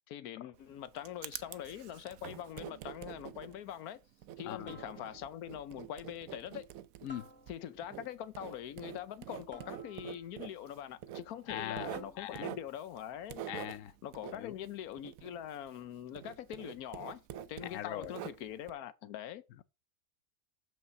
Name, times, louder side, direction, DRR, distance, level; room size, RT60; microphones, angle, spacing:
voice 1, 0.1-4.0 4.4-6.7 7.5-13.4 14.0-17.2 17.5-19.4, left 10 dB, 90° left, 1.2 m, -43 dB
Writing, 0.5-15.9 16.1-18.7, right 11 dB, 70° right, 1.0 m, -47 dB
voice 2, 4.4-4.8 7.0-7.3 11.5-11.9 12.2-12.5 13.5-13.9 14.3-14.5 17.7-18.1, left 12 dB, 70° left, 0.9 m, -40 dB
sound 1, 4.7-5.4 7.1-7.9 9.5-10.4 11.9-12.5, equal, 10° left, 1.3 m, -55 dB
6.0 x 5.3 x 6.7 m
omnidirectional pair, 1.5 m